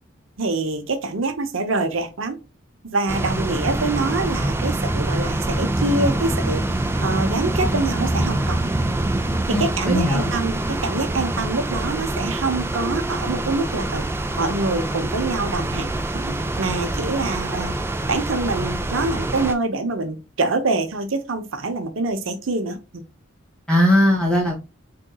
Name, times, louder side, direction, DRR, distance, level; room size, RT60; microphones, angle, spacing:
voice 1, 0.4-2.4 2.8-8.7 9.5-14.1 14.4-17.7 18.1-23.0, right 3 dB, 75° right, 0.7 m, -25 dB
sound 1, 3.1-19.5, right 1 dB, 10° right, 0.4 m, -25 dB
voice 2, 9.5-10.3 23.7-24.6, left 1 dB, 5° left, 1.9 m, -19 dB
4.2 x 3.7 x 2.2 m
head